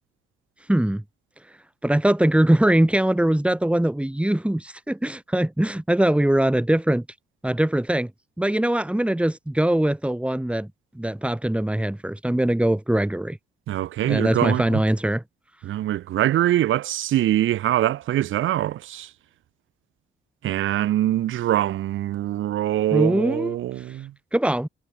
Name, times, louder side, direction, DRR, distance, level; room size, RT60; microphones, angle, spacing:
voice 1, 0.7-1.0 1.8-7.0 7.4-8.1 8.4-10.7 11.0-13.4 14.0-15.2 22.9-23.6 24.3-24.7, right 1 dB, 5° right, 5.3 m, -22 dB
voice 2, 13.7-14.8 15.6-19.1 20.4-24.1, right 13 dB, 80° right, 4.3 m, -23 dB
cardioid pair, 90°, 20 cm